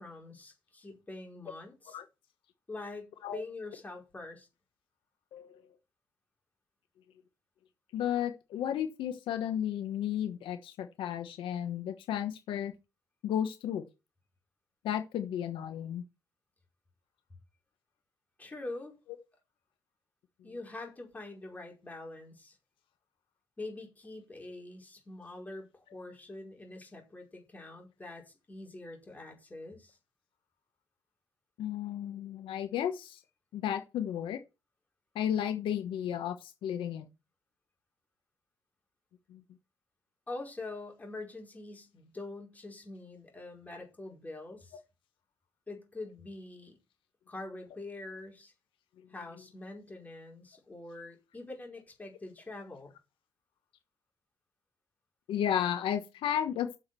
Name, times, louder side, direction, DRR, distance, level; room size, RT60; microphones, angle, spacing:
voice 1, 0.0-2.0 2.7-4.5 18.4-18.9 20.4-22.6 23.6-30.0 40.3-44.8 45.7-46.8 47.3-48.5 49.1-52.9, left 2 dB, 20° left, 5.1 m, -44 dB
voice 2, 5.3-5.6 7.9-12.7 13.2-13.8 14.8-16.0 31.6-33.2 33.5-34.4 35.1-37.1 39.3-39.4 55.3-56.8, left 10 dB, 85° left, 1.1 m, -33 dB
8.6 x 7.2 x 6.2 m
cardioid pair, 130°, 8 cm